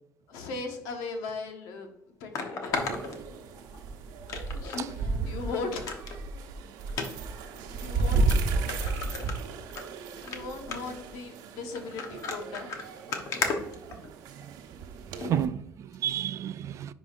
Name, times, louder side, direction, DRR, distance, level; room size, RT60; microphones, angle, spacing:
voice 1, 0.3-1.9 2.2-3.0 4.5-6.1 7.7-8.4 10.1-12.7, left 3 dB, 85° left, 1.3 m, -38 dB
sound 1, 1.3-1.4 2.3-3.8 4.3-4.9 5.2-5.3 5.7-6.2 6.9-7.1 7.8-7.9 8.3-8.4 8.7-9.8 10.2-10.4 10.7-11.0 11.7-14.4 15.2-15.4 15.9-16.0, left 4 dB, 60° left, 1.1 m, -34 dB
sound 2, 2.7-15.5, right 3 dB, 80° right, 0.9 m, -33 dB
voice 2, 13.4-14.0 14.4-16.9, right 10 dB, 50° right, 0.3 m, -33 dB
9.8 x 4.8 x 2.6 m
cardioid pair, 120°, 7 cm